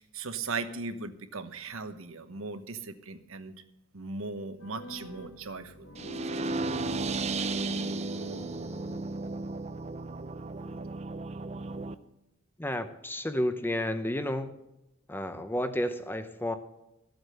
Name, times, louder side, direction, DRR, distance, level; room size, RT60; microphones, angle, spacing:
voice 1, 0.0-3.5 3.9-5.9, right 4 dB, 70° right, 10 dB, 1.1 m, -38 dB
sound 1, 4.6-9.5, left 1 dB, 75° left, 1.6 m, -47 dB
sound 2, 6.0-11.9, right 3 dB, 30° right, 0.5 m, -34 dB
voice 2, 12.6-14.5 15.1-16.5, left 1 dB, 10° left, 9 dB, 0.7 m, -31 dB
14.0 x 8.0 x 6.6 m, 0.90 s
head